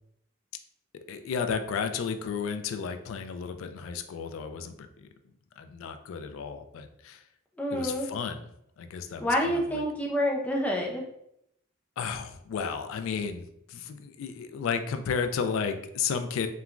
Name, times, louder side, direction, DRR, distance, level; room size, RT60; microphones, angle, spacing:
voice 1, 1.1-5.1 5.6-7.2 7.7-8.4 8.8-9.8 12.0-16.5, left 6 dB, 85° left, 9 dB, 0.3 m, -33 dB
voice 2, 7.6-8.1 9.2-11.0, equal, 5° left, -1 dB, 0.4 m, -27 dB
3.0 x 2.2 x 2.4 m, 0.76 s
head